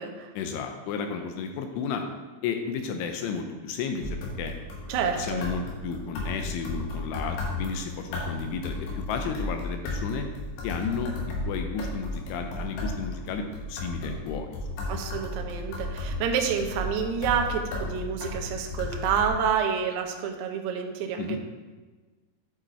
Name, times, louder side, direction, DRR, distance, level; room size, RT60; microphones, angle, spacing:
voice 1, 0.4-2.0 2.4-4.5 5.2-10.3 10.6-11.1 11.4-14.5 21.2-21.4, left 5 dB, 80° left, 5 dB, 2.9 m, -32 dB
sound 1, 4.0-19.3, left 2 dB, 65° left, 3.2 m, -34 dB
voice 2, 4.9-5.5 14.9-21.4, right 7 dB, 85° right, 3 dB, 2.3 m, -28 dB
11.0 x 5.3 x 4.3 m, 1.3 s
omnidirectional pair, 5.9 m